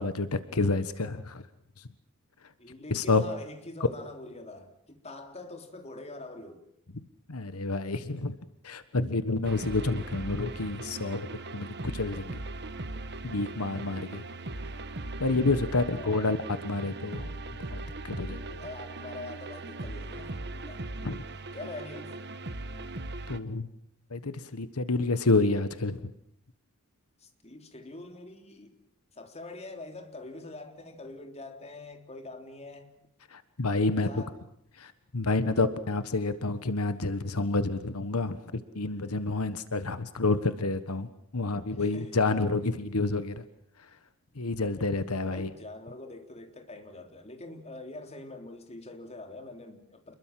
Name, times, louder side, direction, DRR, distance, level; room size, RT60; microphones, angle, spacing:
voice 1, 0.0-1.4 2.9-3.2 7.3-8.4 8.6-11.3 11.5-12.4 13.2-14.2 15.2-16.4 16.6-17.3 17.7-18.4 21.0-21.2 23.3-23.7 24.1-26.1 33.3-34.1 34.8-43.4 44.4-45.5, left 3 dB, 85° left, 1.4 m, -29 dB
voice 2, 2.6-6.6 15.7-16.4 18.2-20.9 21.5-22.2 27.2-28.7 29.1-33.0 34.0-34.4 41.8-42.2 44.8-50.1, left 2 dB, 30° left, 3.4 m, -44 dB
sound 1, 9.4-23.4, right 2 dB, 50° right, 1.5 m, -39 dB
28.5 x 21.5 x 7.6 m
head